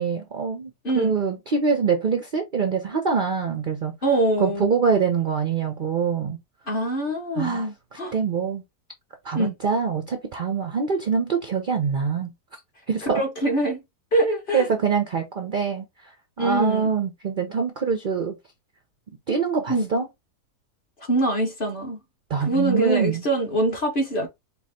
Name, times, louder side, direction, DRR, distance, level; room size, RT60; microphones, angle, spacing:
voice 1, 0.0-3.9 4.4-6.4 7.4-8.6 9.2-12.3 12.9-13.2 14.5-15.8 16.4-18.3 19.3-20.1 22.3-23.2, right 5 dB, 55° right, 0.5 m, -24 dB
voice 2, 4.0-4.7 6.7-8.1 9.3-9.5 13.1-13.8 14.1-14.7 16.4-16.9 19.7-19.9 21.1-22.0 22.4-24.3, right 1 dB, 35° left, 1.4 m, -24 dB
4.7 x 2.3 x 3.6 m
omnidirectional pair, 1.7 m